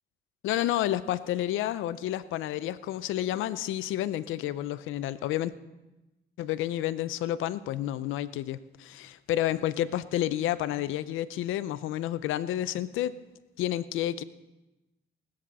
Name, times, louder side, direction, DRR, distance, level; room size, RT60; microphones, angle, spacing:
voice 1, 0.4-5.5 6.4-13.1 13.6-14.2, left 13 dB, 90° left, 16 dB, 0.6 m, -30 dB
17.0 x 13.0 x 4.1 m, 1.0 s
cardioid pair, 90°, 20 cm